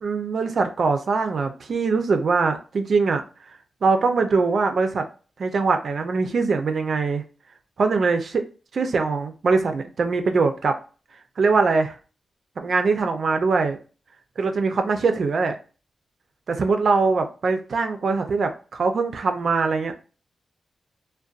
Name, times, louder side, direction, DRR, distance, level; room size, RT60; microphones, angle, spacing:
voice 1, 0.0-3.2 3.8-5.1 5.4-7.2 7.8-8.4 8.7-10.8 11.4-12.0 12.6-13.8 14.4-15.6 16.5-19.9, right 4 dB, 65° right, 6 dB, 0.4 m, -22 dB
2.6 x 2.2 x 2.3 m, 0.36 s
cardioid pair, 60°, 0 cm